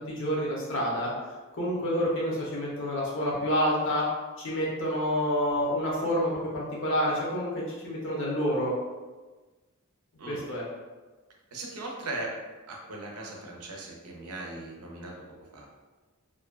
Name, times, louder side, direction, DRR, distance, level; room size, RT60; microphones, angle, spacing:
voice 1, 0.1-1.1 1.5-4.1 4.4-8.7 10.3-10.6, equal, 60° left, -5 dB, 0.7 m, -28 dB
voice 2, 11.5-12.3 12.7-15.1 15.5-15.7, right 2 dB, 90° right, -1 dB, 0.5 m, -38 dB
2.6 x 2.1 x 2.3 m, 1.3 s
head